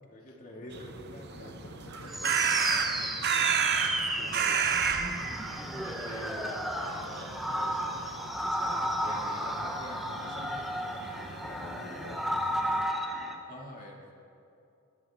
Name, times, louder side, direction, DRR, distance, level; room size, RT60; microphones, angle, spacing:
voice 1, 0.1-2.1 2.7-12.1 13.5-14.0, left 1 dB, 40° left, -1 dB, 2.3 m, -47 dB
sound 1, 0.7-12.8, right 7 dB, 50° right, 0.8 m, -33 dB
voice 2, 1.3-2.5 11.6-13.4, left 2 dB, 90° left, 3 dB, 1.2 m, -50 dB
Crow, 1.7-9.1, right 5 dB, 80° right, 1.0 m, -50 dB
sound 2, 2.1-13.4, equal, ahead, 1.1 m, -33 dB
22.0 x 13.5 x 3.7 m, 2.7 s
head